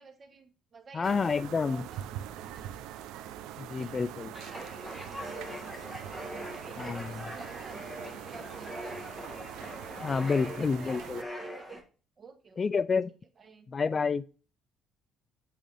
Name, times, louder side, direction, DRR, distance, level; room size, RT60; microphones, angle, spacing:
voice 1, 0.0-2.7 3.8-9.4 10.2-11.8 12.2-12.7 13.4-13.7, right 5 dB, 35° right, 1.2 m, -52 dB
voice 2, 0.9-1.9 3.6-4.3 6.8-7.2 10.0-11.2 12.6-13.1 13.7-14.2, left 5 dB, 30° left, 0.3 m, -29 dB
sound 1, 1.0-11.2, right 11 dB, 90° right, 0.6 m, -43 dB
sound 2, 4.3-11.8, equal, 5° left, 1.3 m, -42 dB
8.5 x 3.7 x 3.4 m
cardioid pair, 130°, 0 cm